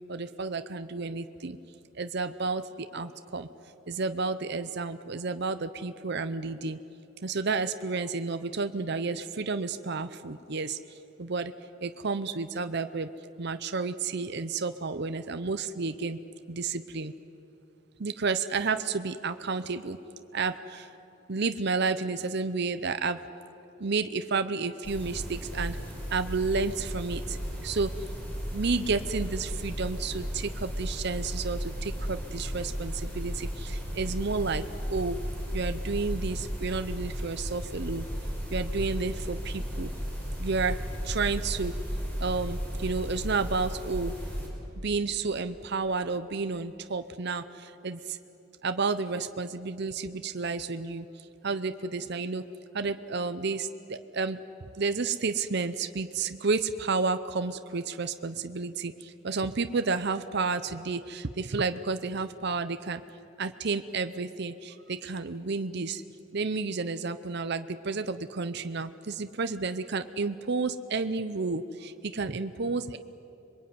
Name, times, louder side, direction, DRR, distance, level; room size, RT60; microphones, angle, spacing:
voice 1, 0.1-1.6 1.9-3.5 3.9-6.8 7.2-11.5 11.8-13.1 13.4-16.2 16.5-17.1 18.0-20.0 20.3-20.9 21.3-23.2 23.8-25.8 26.1-27.9 28.5-34.6 34.9-35.2 35.5-38.1 38.5-39.9 40.4-40.8 41.0-41.8 42.2-44.1 44.8-48.2 48.6-51.1 51.4-52.5 52.7-54.4 54.7-63.0 63.4-66.0 66.3-73.0, right 4 dB, 50° right, 10 dB, 0.7 m, -31 dB
sound 1, 24.8-44.5, equal, 10° left, 5.4 m, -35 dB
26.5 x 22.5 x 9.5 m, 2.9 s
head